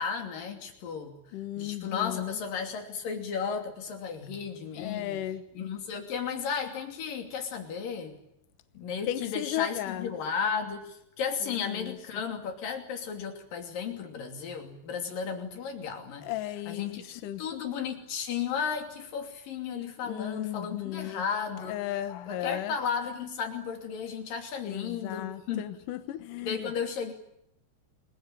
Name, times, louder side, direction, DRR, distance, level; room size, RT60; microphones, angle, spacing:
voice 1, 0.0-1.2 1.6-5.2 5.5-8.2 8.7-21.8 22.3-25.8 26.4-27.1, left 6 dB, 50° left, 4.2 m, -34 dB
voice 2, 1.3-2.3 4.8-5.4 9.1-10.1 11.7-12.0 16.2-17.4 20.0-21.2 21.7-22.7 24.6-26.7, left 13 dB, 75° left, 1.9 m, -35 dB
28.5 x 20.5 x 9.0 m
omnidirectional pair, 5.4 m